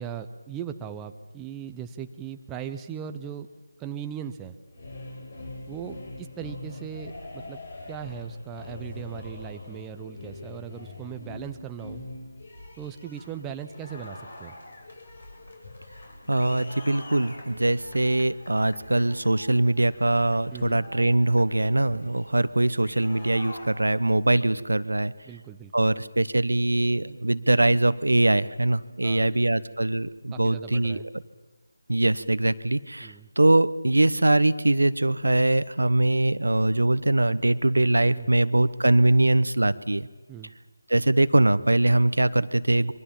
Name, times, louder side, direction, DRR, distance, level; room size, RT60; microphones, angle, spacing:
voice 1, 0.0-3.5 3.8-4.6 5.7-7.6 7.9-12.0 12.8-14.5 20.5-20.8 25.2-25.9 29.0-29.6 30.3-31.1 33.0-33.3 38.2-38.4 40.3-40.5, right 8 dB, 10° right, 7 dB, 0.8 m, -38 dB
sound 1, 4.7-24.2, left 2 dB, 55° left, 6.8 m, -43 dB
voice 2, 16.3-25.1 25.7-31.0 31.9-40.1 40.9-42.9, right 2 dB, 80° right, 15 dB, 1.1 m, -22 dB
27.0 x 23.0 x 7.3 m, 1.2 s
figure-of-eight pair, 160°, 0 cm